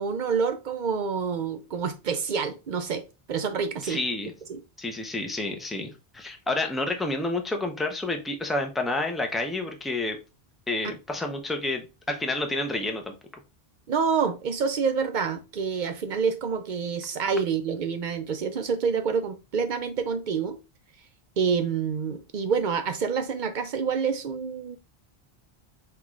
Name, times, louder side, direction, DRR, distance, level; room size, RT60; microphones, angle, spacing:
voice 1, 0.0-3.0 3.3-4.0 4.5-4.6 13.9-20.6 21.4-24.8, right 6 dB, 55° right, 0.6 m, -27 dB
voice 2, 3.8-4.3 4.8-10.2 10.7-13.1, left 2 dB, ahead, 0.4 m, -29 dB
5.9 x 2.4 x 3.1 m
omnidirectional pair, 1.1 m